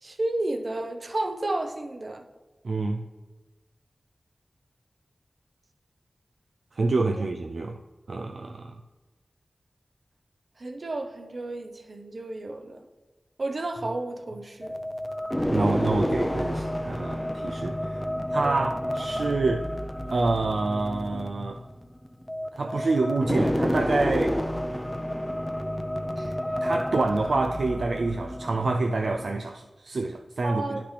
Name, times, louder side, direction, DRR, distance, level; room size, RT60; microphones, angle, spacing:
voice 1, 0.0-2.2 10.6-12.9 13.4-14.8 18.4-18.6 26.2-26.3 30.4-30.8, right 2 dB, 60° right, 6 dB, 0.7 m, -32 dB
voice 2, 2.6-3.1 6.8-7.8 8.1-8.8 15.5-18.1 18.3-19.7 20.1-21.6 22.5-24.4 26.6-30.8, right 3 dB, 80° right, 3 dB, 0.3 m, -27 dB
sound 1, 14.6-29.3, equal, 10° left, 0.5 m, -30 dB
10.0 x 5.8 x 3.3 m, 1.2 s
cardioid pair, 40°, 0 cm